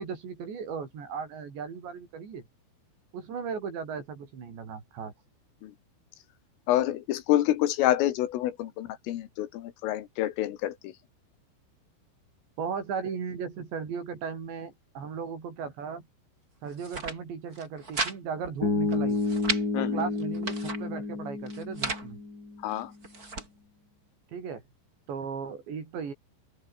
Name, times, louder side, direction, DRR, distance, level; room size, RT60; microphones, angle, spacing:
voice 1, 0.0-2.4 3.1-5.1 12.6-16.1 16.6-19.2 19.8-22.2 24.3-24.6 25.1-26.1, right 6 dB, 60° right, 7.0 m, -36 dB
voice 2, 6.7-10.7 19.7-20.0 22.6-22.9, left 13 dB, 80° left, 4.2 m, -27 dB
sound 1, 16.7-17.2 17.5-18.2 18.4-18.5 18.9-19.6 20.2-20.8 21.5-22.1 22.7-23.5, right 3 dB, 20° right, 4.0 m, -34 dB
Bass guitar, 18.6-22.7, left 3 dB, 20° left, 4.1 m, -30 dB
open air
omnidirectional pair, 5.9 m